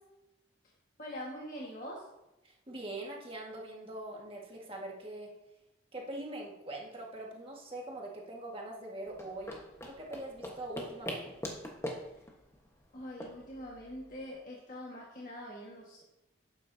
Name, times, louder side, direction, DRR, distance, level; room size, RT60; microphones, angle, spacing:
voice 1, 1.0-2.0 12.9-16.0, equal, 40° left, -4 dB, 1.7 m, -43 dB
voice 2, 2.4-5.3 5.9-9.6 9.9-11.4, right 1 dB, 30° right, -1 dB, 1.8 m, -43 dB
sound 1, 9.1-14.3, equal, 15° left, 1.3 m, -43 dB
12.5 x 9.2 x 2.8 m, 0.93 s
head